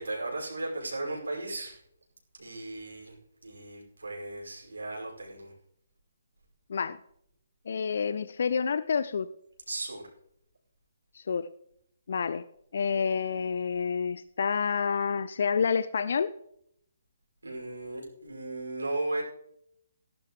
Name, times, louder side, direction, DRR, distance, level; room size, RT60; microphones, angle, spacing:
voice 1, 0.0-1.8 2.4-3.1 3.4-5.5 9.7-10.0 17.4-19.2, right 2 dB, 70° right, -2 dB, 5.6 m, -36 dB
voice 2, 7.7-9.3 11.1-11.5 12.1-12.4 12.7-16.3, left 6 dB, 50° left, 15 dB, 0.5 m, -28 dB
19.0 x 11.5 x 3.2 m, 0.73 s
figure-of-eight pair, 135°, 0 cm